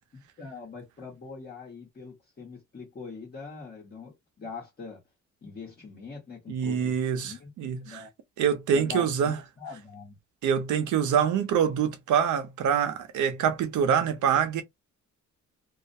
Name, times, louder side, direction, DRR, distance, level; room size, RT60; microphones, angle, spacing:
voice 1, 0.1-5.0 5.4-7.0 7.2-7.5 7.8-8.1 8.7-10.2, left 5 dB, 35° left, 1.1 m, -42 dB
voice 2, 6.5-8.1 8.4-9.4 10.4-14.6, right 8 dB, 75° right, 0.7 m, -25 dB
2.4 x 2.1 x 2.6 m
cardioid pair, 90°, 30 cm